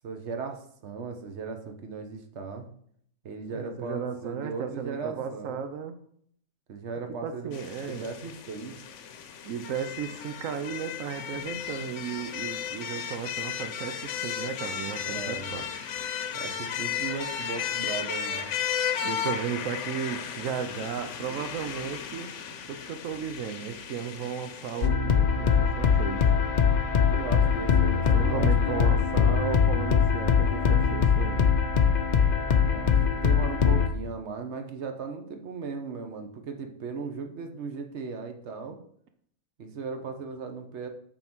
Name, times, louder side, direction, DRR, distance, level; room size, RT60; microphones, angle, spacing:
voice 1, 0.0-2.7 3.2-5.6 6.7-7.5 7.8-8.7 15.0-15.5 16.3-18.5 27.1-29.0 32.6-38.8 39.6-40.9, right 5 dB, 60° right, 5 dB, 1.3 m, -37 dB
voice 2, 3.5-5.9 7.2-8.1 9.4-15.7 19.0-22.3 22.7-26.3 28.1-31.5, right 7 dB, 85° right, 8 dB, 1.1 m, -35 dB
sound 1, 7.5-24.9, left 8 dB, 70° left, 1.0 m, -35 dB
sound 2, 24.8-33.9, left 6 dB, 50° left, 0.6 m, -22 dB
8.9 x 4.0 x 6.0 m, 0.65 s
omnidirectional pair, 1.3 m